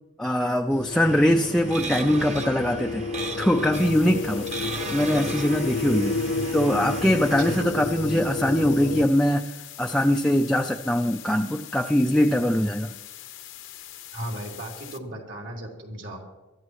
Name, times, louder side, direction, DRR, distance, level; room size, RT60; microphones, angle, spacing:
voice 1, 0.2-3.0 3.4-6.2 6.5-13.0, equal, 5° left, 2 dB, 0.4 m, -22 dB
sound 1, 0.7-9.1, left 3 dB, 55° left, 0.5 m, -31 dB
sound 2, 0.9-7.6, right 3 dB, 35° right, 1.1 m, -37 dB
sound 3, 3.7-15.0, left 12 dB, 75° left, 1.0 m, -43 dB
voice 2, 7.4-7.9 14.1-16.2, right 1 dB, 65° right, -1 dB, 3.2 m, -36 dB
23.0 x 13.5 x 3.1 m, 1.1 s
head